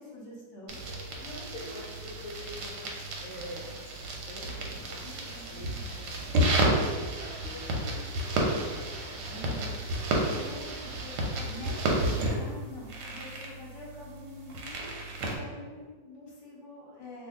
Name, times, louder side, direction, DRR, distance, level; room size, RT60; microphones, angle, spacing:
voice 1, 0.0-1.5 5.0-6.0 9.3-9.8 10.3-17.3, left 1 dB, 50° left, -4 dB, 0.9 m, -46 dB
sound 1, 0.7-15.4, right 1 dB, 70° right, 1.1 m, -32 dB
voice 2, 1.5-5.0 5.5-8.1 8.3-9.2, left 1 dB, 80° left, -4 dB, 0.7 m, -46 dB
2.7 x 2.5 x 3.5 m, 1.4 s
omnidirectional pair, 2.1 m